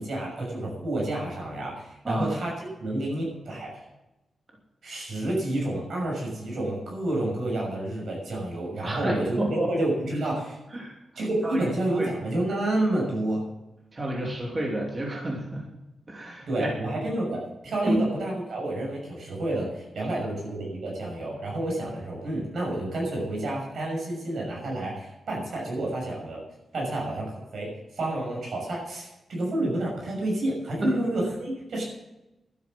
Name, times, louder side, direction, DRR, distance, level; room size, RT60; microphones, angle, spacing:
voice 1, 0.0-3.8 4.8-10.6 11.1-13.4 16.5-26.4 26.7-31.8, right 1 dB, 65° right, -2 dB, 6.5 m, -29 dB
voice 2, 8.8-9.7 10.7-10.9 11.4-11.7 12.0-12.1 13.9-15.7 16.1-16.7 17.9-18.0 30.8-31.0, right 1 dB, 25° right, -1 dB, 2.8 m, -30 dB
12.0 x 9.8 x 7.5 m, 0.96 s
wide cardioid pair, 155°, 0 cm